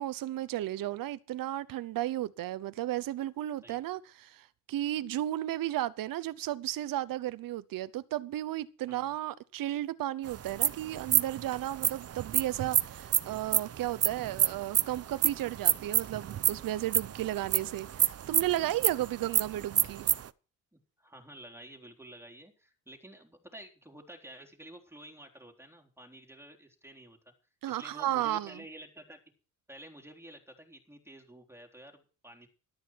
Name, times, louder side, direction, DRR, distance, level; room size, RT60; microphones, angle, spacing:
voice 1, 0.0-20.1 27.6-28.5, right 14 dB, 85° right, 0.8 m, -34 dB
sound 1, 10.3-20.3, right 10 dB, 50° right, 0.7 m, -28 dB
voice 2, 20.7-27.2 27.7-29.2 29.7-32.5, right 1 dB, 5° right, 3.7 m, -51 dB
13.5 x 12.5 x 4.6 m
cardioid pair, 95°, 33 cm